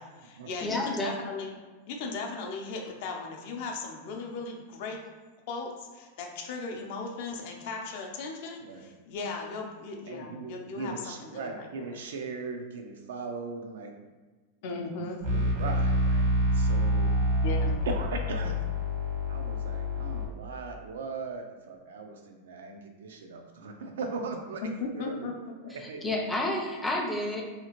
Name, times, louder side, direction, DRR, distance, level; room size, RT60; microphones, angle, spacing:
voice 1, 0.0-1.5 1.9-5.0 5.5-10.9 11.2-12.0 14.6-15.2 17.4-17.8 24.8-25.3, left 4 dB, 55° left, 1 dB, 0.5 m, -37 dB
voice 2, 0.6-1.1 26.0-27.4, left 1 dB, 5° left, -1 dB, 0.4 m, -29 dB
voice 3, 8.6-8.9 10.0-14.0 14.8-17.2 17.9-18.6 19.3-24.6 25.0-25.3 25.6-26.0 27.4-27.5, right 4 dB, 90° right, 4 dB, 0.4 m, -39 dB
sound 1, 15.2-20.3, equal, 70° right, 0.9 m, -27 dB
2.8 x 2.4 x 2.9 m, 1.3 s
supercardioid pair, 150°, 0 cm